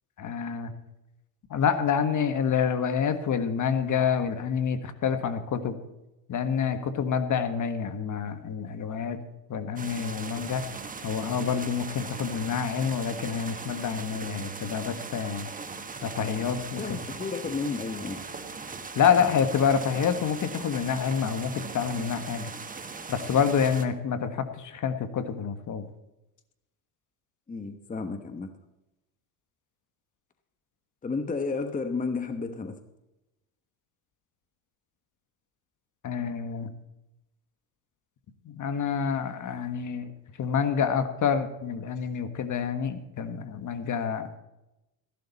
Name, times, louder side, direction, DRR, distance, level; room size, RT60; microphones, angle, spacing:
voice 1, 0.2-0.7 1.5-5.8 6.3-9.2 9.5-10.6 11.0-15.5 16.0-17.0 18.9-22.5 23.1-25.8 36.0-36.7 38.4-40.1 40.4-44.3, left 7 dB, 45° left, 10 dB, 1.5 m, -27 dB
sound 1, 9.8-23.9, right 4 dB, 20° right, 1.3 m, -39 dB
voice 2, 16.8-18.2 27.5-28.5 31.0-32.8, left 4 dB, 20° left, 8 dB, 1.1 m, -32 dB
14.0 x 11.5 x 4.1 m, 0.94 s
supercardioid pair, 95°, 44 cm